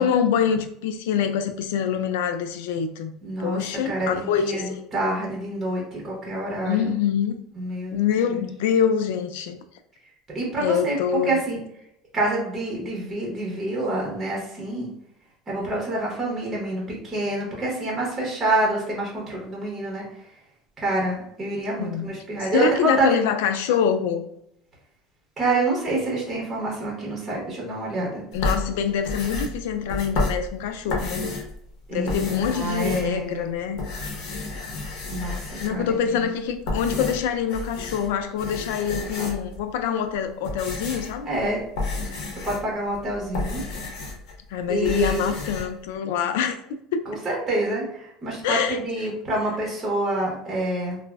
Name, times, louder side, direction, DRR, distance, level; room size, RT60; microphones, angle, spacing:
voice 1, 0.0-3.1 3.4-4.9 6.7-7.4 7.9-9.6 10.6-11.4 21.8-22.1 22.5-24.3 28.3-31.2 31.9-33.8 35.6-41.3 44.5-46.6 46.9-47.0 48.4-48.8, left 7 dB, 85° left, 0.3 m, -25 dB
voice 2, 3.2-6.9 7.6-8.5 10.3-11.6 12.1-14.9 15.5-20.3 20.8-23.2 25.4-28.2 31.9-33.4 35.1-36.3 41.2-41.6 42.4-43.6 44.7-45.1 47.1-51.0, right 2 dB, 20° right, 0.9 m, -27 dB
sound 1, 28.3-31.6 31.9-33.4 33.7-35.9 36.5-38.1 38.4-39.6 40.1-44.4 44.6-45.7, left 3 dB, 65° left, 0.8 m, -31 dB
3.3 x 2.0 x 2.3 m
cardioid pair, 140°, 0 cm